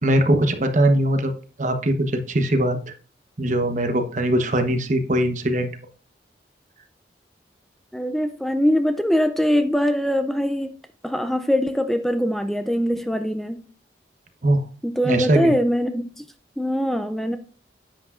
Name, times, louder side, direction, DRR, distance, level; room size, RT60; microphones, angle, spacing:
voice 1, 0.0-1.3 1.6-2.8 3.4-5.7 14.4-14.6 15.0-15.5, right 1 dB, 45° right, 1.0 m, -21 dB
voice 2, 7.9-10.7 11.0-13.6 14.8-16.2 16.6-17.4, equal, ahead, 0.4 m, -22 dB
10.5 x 8.2 x 2.5 m
head